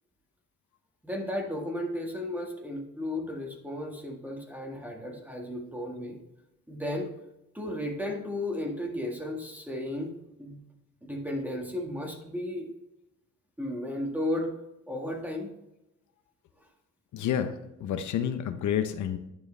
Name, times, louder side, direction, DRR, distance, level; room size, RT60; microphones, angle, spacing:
voice 1, 1.0-6.2 6.7-7.1 7.5-10.1 10.4-10.6 11.0-12.7 13.6-14.5 14.9-15.5, left 1 dB, 5° right, 0 dB, 1.7 m, -34 dB
voice 2, 17.1-19.2, left 9 dB, 75° left, 10 dB, 0.8 m, -29 dB
10.5 x 4.7 x 3.3 m, 0.89 s
cardioid pair, 90°, 30 cm